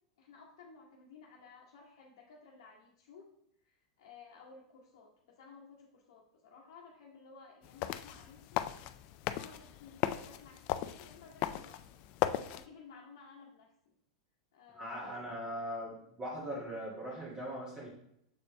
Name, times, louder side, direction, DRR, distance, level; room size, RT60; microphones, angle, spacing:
voice 1, 0.2-3.3 3.6-8.6 9.3-11.8 12.3-13.9 14.5-15.2, left 5 dB, 70° left, -2 dB, 1.1 m, -56 dB
sound 1, 7.6-12.7, left 13 dB, 50° left, 0.4 m, -37 dB
voice 2, 14.7-17.9, equal, 25° right, -8 dB, 1.9 m, -40 dB
6.7 x 4.2 x 3.3 m, 0.75 s
hypercardioid pair, 105°, 3 cm